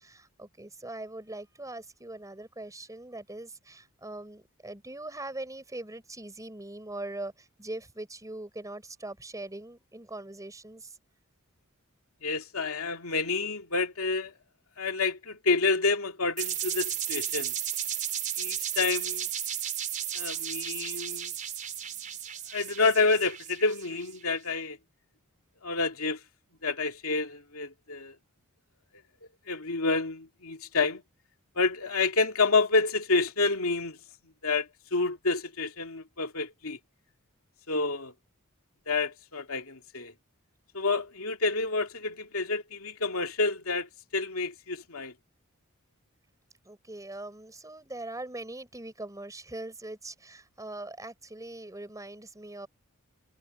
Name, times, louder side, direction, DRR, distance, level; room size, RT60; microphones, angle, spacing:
voice 1, 0.0-11.0 46.7-52.7, right 2 dB, 15° right, 5.1 m, -41 dB
voice 2, 12.2-14.3 14.8-17.5 18.4-19.3 20.1-21.3 22.5-24.8 25.6-26.2 26.6-28.1 29.5-31.0 31.6-34.0 34.4-36.8 37.7-38.1 38.9-40.1 40.7-45.1, left 3 dB, 75° left, 2.7 m, -28 dB
sound 1, 16.4-24.2, right 10 dB, 40° right, 4.3 m, -34 dB
head